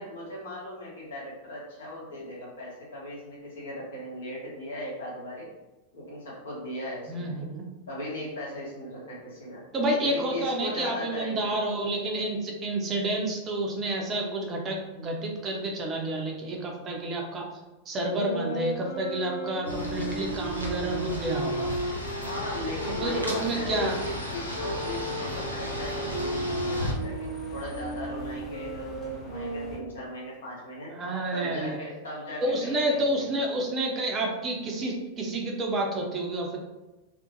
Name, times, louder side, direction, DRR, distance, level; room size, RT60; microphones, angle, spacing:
voice 1, 0.0-5.5 5.9-7.3 7.9-9.6 10.0-11.5 22.2-30.9 31.3-33.2, left 1 dB, 65° left, -5 dB, 1.0 m, -38 dB
voice 2, 7.1-7.6 9.7-17.5 17.9-21.7 22.8-24.0 30.9-31.8 32.4-36.6, right 1 dB, 25° right, 0 dB, 0.5 m, -29 dB
sound 1, 18.0-23.8 24.5-30.0, right 1 dB, 80° right, 0.5 m, -35 dB
sound 2, 19.7-26.9, equal, 90° left, 0.4 m, -35 dB
sound 3, 19.8-29.8, left 2 dB, 25° left, 0.6 m, -43 dB
2.5 x 2.1 x 2.6 m, 1.0 s
figure-of-eight pair, 90°, 0 cm